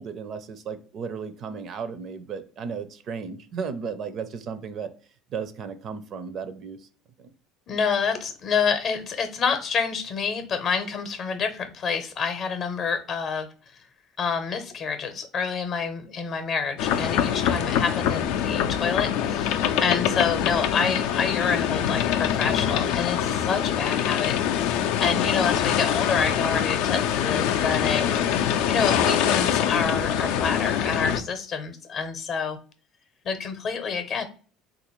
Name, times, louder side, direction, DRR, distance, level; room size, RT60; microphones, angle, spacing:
voice 1, 0.0-4.9 5.3-6.9 7.2-7.3, right 6 dB, 45° right, 11 dB, 0.4 m, -34 dB
voice 2, 7.7-13.5 14.2-32.6 33.2-34.3, left 6 dB, 45° left, 9 dB, 0.7 m, -28 dB
sound 1, 16.8-31.2, left 9 dB, 75° left, 0.4 m, -24 dB
3.4 x 2.4 x 2.9 m, 0.40 s
cardioid pair, 120°, 0 cm